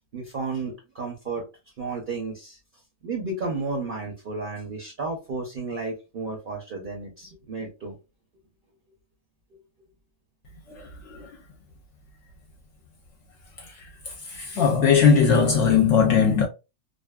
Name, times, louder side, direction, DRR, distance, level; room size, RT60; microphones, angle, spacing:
voice 1, 0.1-1.5 1.8-2.6 3.0-8.0 14.6-14.7, right 3 dB, 50° right, 0.7 m, -32 dB
voice 2, 10.7-11.3 13.6-16.5, left 6 dB, 65° left, 0.9 m, -20 dB
2.5 x 2.5 x 2.2 m
omnidirectional pair, 1.4 m